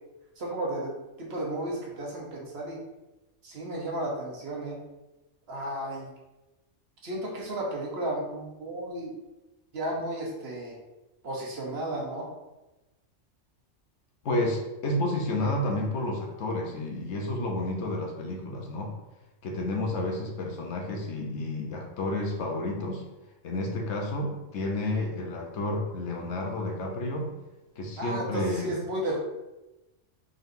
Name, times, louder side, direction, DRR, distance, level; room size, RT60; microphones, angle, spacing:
voice 1, 0.4-2.8 3.4-4.8 5.5-6.1 7.0-9.1 9.7-10.8 11.2-12.3 28.0-29.2, right 1 dB, 60° right, -2 dB, 1.1 m, -33 dB
voice 2, 14.2-18.9 19.4-23.0 23.4-27.3 27.8-28.8, left 1 dB, 70° left, 1 dB, 1.0 m, -30 dB
3.9 x 3.8 x 2.6 m, 1.0 s
omnidirectional pair, 1.2 m